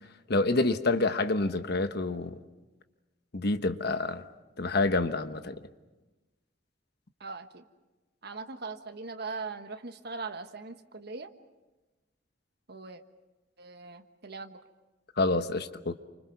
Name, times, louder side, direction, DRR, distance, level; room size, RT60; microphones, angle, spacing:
voice 1, 0.3-2.4 3.3-4.3 4.6-5.6 15.2-15.9, left 2 dB, 60° left, 9 dB, 1.2 m, -27 dB
voice 2, 7.2-7.7 8.2-11.3 12.7-13.0 13.6-14.6, right 4 dB, 60° right, 7 dB, 1.4 m, -40 dB
28.5 x 25.5 x 5.9 m, 1.1 s
head